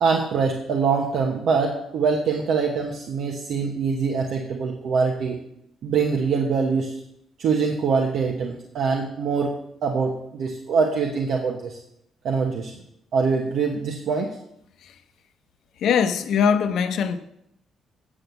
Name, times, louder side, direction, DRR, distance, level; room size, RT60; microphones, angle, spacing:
voice 1, 0.0-5.4 5.8-7.0 7.4-9.5 9.8-11.8 12.2-12.7 13.1-14.3, right 5 dB, 70° right, 1.1 m, -24 dB
voice 2, 15.8-17.2, left 7 dB, 75° left, 0.7 m, -21 dB
8.8 x 6.0 x 6.9 m
cardioid pair, 90°, 0 cm